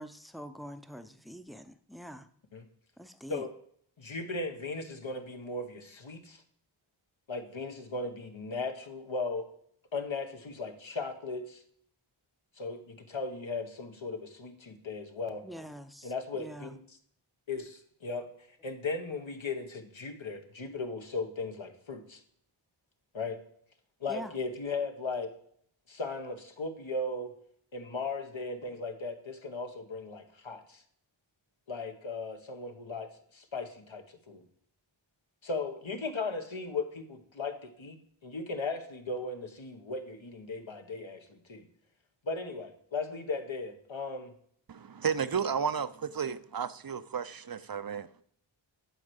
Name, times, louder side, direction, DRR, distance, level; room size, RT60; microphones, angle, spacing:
voice 1, 0.0-2.3 3.0-3.5 15.4-16.8 24.1-24.3, equal, ahead, 0.7 m, -45 dB
voice 2, 4.0-6.4 7.3-9.5 9.9-11.6 12.6-15.4 16.0-16.8 17.5-22.2 23.1-23.4 24.0-25.3 25.9-27.4 27.7-30.8 31.7-34.4 35.4-41.7 42.2-44.3, left 3 dB, 70° left, 1.4 m, -37 dB
voice 3, 44.7-48.1, right 7 dB, 45° right, 0.6 m, -33 dB
11.0 x 4.5 x 8.0 m
wide cardioid pair, 65°, 48 cm